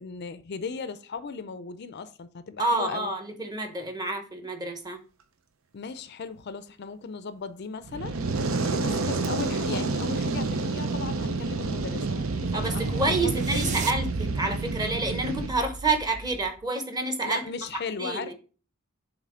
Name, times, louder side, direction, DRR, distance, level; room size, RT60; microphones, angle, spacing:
voice 1, 0.0-3.1 5.7-8.2 8.7-13.8 17.2-18.3, left 5 dB, 50° left, 0.4 m, -37 dB
voice 2, 2.6-5.0 12.5-17.4 18.0-18.3, right 3 dB, 20° right, 1.0 m, -28 dB
Fire, 7.8-15.5, right 3 dB, 80° right, 0.7 m, -29 dB
sound 1, 10.7-16.6, right 3 dB, 35° right, 0.4 m, -35 dB
7.4 x 3.1 x 4.9 m
head